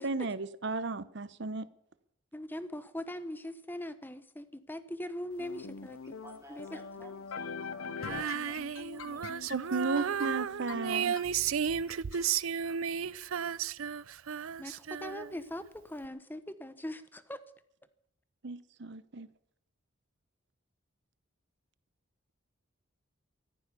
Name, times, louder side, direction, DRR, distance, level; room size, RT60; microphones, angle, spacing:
voice 1, 0.0-1.7 9.5-11.2 18.4-19.3, right 3 dB, 55° right, 16 dB, 0.8 m, -34 dB
voice 2, 2.3-6.1 6.5-6.8 14.6-17.4, left 1 dB, 10° left, 12 dB, 1.0 m, -41 dB
sound 1, 5.4-12.2, left 5 dB, 85° left, 0.8 m, -43 dB
voice 3, 6.1-9.4, right 1 dB, 15° right, 1 dB, 2.4 m, -54 dB
Female singing, 8.0-15.5, right 8 dB, 80° right, 0.5 m, -34 dB
15.0 x 13.5 x 6.9 m, 0.73 s
head